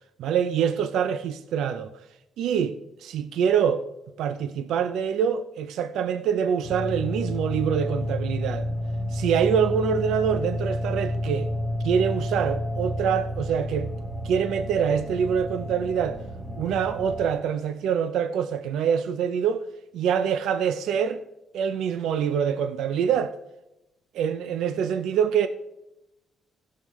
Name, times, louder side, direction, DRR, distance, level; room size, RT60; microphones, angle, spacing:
voice 1, 0.2-1.9 2.4-3.8 4.2-8.7 9.1-11.5 11.8-13.9 14.2-16.2 16.5-19.6 19.9-21.2 21.5-23.4 24.1-25.5, right 7 dB, 80° right, 0.5 m, -25 dB
sound 1, 6.6-17.3, left 1 dB, 25° right, 1.8 m, -30 dB
16.0 x 6.5 x 3.1 m
cardioid pair, 90°, 0 cm